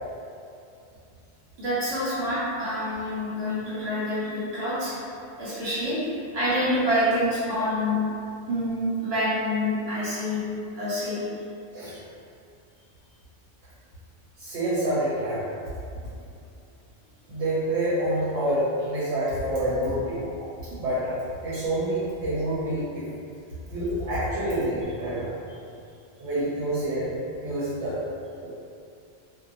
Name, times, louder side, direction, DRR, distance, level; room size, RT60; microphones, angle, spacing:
voice 1, 1.6-4.9 5.4-8.0 8.5-10.4 10.7-11.3 21.5-21.7, equal, 65° right, -11 dB, 1.3 m, -27 dB
voice 2, 14.4-15.4 17.3-20.3 20.8-21.1 21.4-23.1 23.7-25.3 26.2-27.1 27.4-27.9, right 1 dB, 85° right, -12 dB, 1.0 m, -27 dB
2.7 x 2.2 x 2.5 m, 2.5 s
omnidirectional pair, 1.2 m